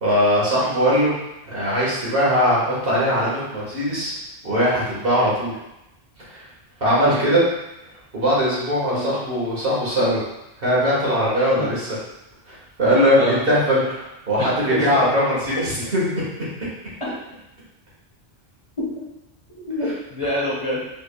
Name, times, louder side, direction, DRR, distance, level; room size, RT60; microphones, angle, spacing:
voice 1, 0.0-1.1 1.5-4.1 4.4-5.5 6.3-6.4 6.8-7.4 8.1-10.2 10.6-11.9 12.5-16.2, equal, 60° right, -7 dB, 1.6 m, -20 dB
voice 2, 19.5-20.8, equal, 30° left, -7 dB, 1.2 m, -26 dB
5.6 x 3.6 x 2.2 m, 0.92 s
omnidirectional pair, 1.1 m